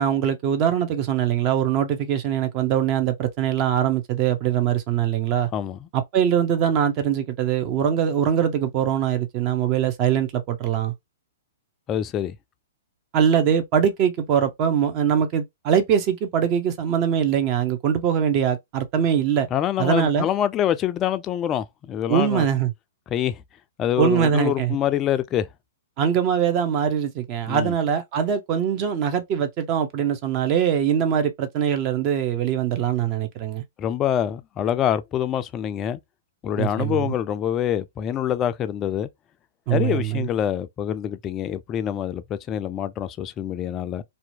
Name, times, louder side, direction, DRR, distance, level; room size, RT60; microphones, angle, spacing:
voice 1, 0.0-5.5 5.9-10.9 13.1-19.5 19.8-20.3 22.1-22.7 24.0-24.8 26.0-33.6 36.6-37.1 39.7-40.3, right 8 dB, 35° right, 0.5 m, -22 dB
voice 2, 5.5-5.9 11.9-12.4 19.5-22.5 23.1-23.4 23.8-25.5 27.5-27.7 33.8-36.0 36.4-39.1 39.7-44.0, left 10 dB, 25° left, 0.3 m, -25 dB
2.7 x 2.1 x 2.6 m
figure-of-eight pair, 115°, 0 cm